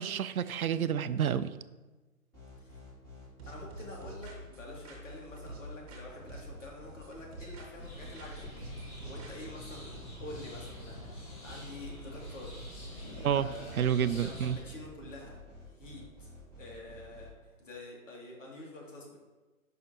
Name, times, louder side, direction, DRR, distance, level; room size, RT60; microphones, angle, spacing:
voice 1, 0.0-1.5 13.2-13.5 13.8-14.6, right 9 dB, 80° right, 14 dB, 0.5 m, -29 dB
sound 1, 2.3-17.3, left 1 dB, 10° left, 2.6 m, -50 dB
sound 2, 3.4-6.0 6.3-7.9 8.2-9.8, right 3 dB, 25° right, 1.4 m, -48 dB
voice 2, 3.5-12.7 13.0-15.4 15.7-17.3 17.6-19.2, left 2 dB, 60° left, -2 dB, 2.6 m, -47 dB
sound 3, 7.8-14.6, equal, 25° left, 1.8 m, -46 dB
10.5 x 5.8 x 2.9 m, 1.2 s
hypercardioid pair, 150°, 43 cm